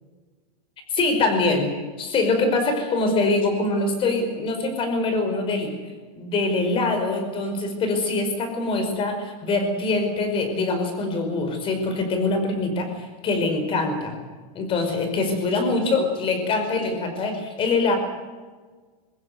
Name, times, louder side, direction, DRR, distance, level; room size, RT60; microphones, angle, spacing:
voice 1, 0.9-1.7 2.0-5.7 6.2-14.2 14.6-18.0, left 3 dB, 25° left, 7 dB, 5.3 m, -24 dB
23.5 x 20.0 x 8.0 m, 1.4 s
supercardioid pair, 155°, 20 cm